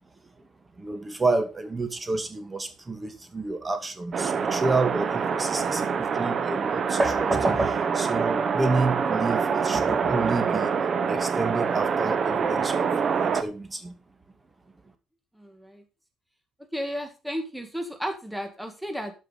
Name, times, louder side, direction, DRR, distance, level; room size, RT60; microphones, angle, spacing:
voice 1, 0.8-10.7 11.1-12.9 13.2-13.9, right 3 dB, 20° right, 2.0 m, -29 dB
sound 1, 4.1-13.4, right 6 dB, 45° right, 1.0 m, -25 dB
voice 2, 15.4-15.8 16.7-19.1, equal, ahead, 1.8 m, -33 dB
13.0 x 5.6 x 5.4 m
cardioid pair, 125°, 0 cm